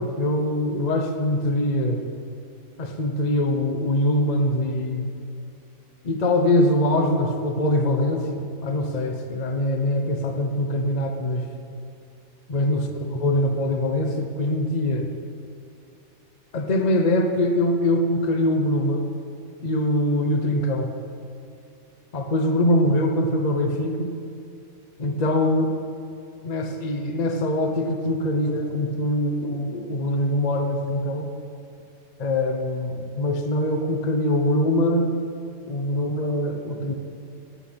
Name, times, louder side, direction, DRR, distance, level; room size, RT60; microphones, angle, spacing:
voice 1, 0.0-2.0 2.8-5.1 6.0-11.5 12.5-12.9 13.1-15.1 16.5-19.1 19.6-20.9 22.1-24.1 25.0-25.8 26.4-31.3 32.2-35.1 35.7-36.9, left 1 dB, 35° left, 4 dB, 0.9 m, -23 dB
17.5 x 6.0 x 8.0 m, 2.6 s
omnidirectional pair, 1.5 m